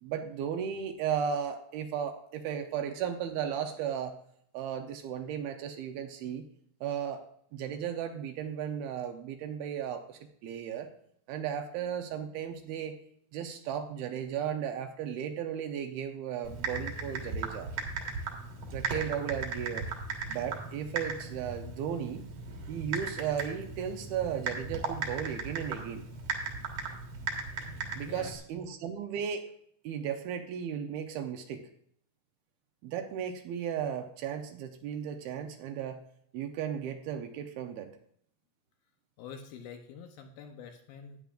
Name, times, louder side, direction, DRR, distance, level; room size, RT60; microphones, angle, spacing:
voice 1, 0.0-4.2 4.5-6.4 6.8-7.2 7.5-10.9 11.3-12.9 13.3-17.7 18.7-19.9 20.3-22.2 22.7-26.1 28.0-29.5 29.8-31.7 32.8-36.0 36.3-37.9, right 8 dB, 75° right, 5 dB, 2.6 m, -35 dB
Typing, 16.4-28.4, right 4 dB, 55° right, 2.7 m, -37 dB
voice 2, 28.0-28.3 28.6-28.7 39.2-41.2, left 7 dB, 75° left, 4 dB, 2.5 m, -46 dB
13.0 x 9.8 x 2.5 m, 0.66 s
omnidirectional pair, 4.6 m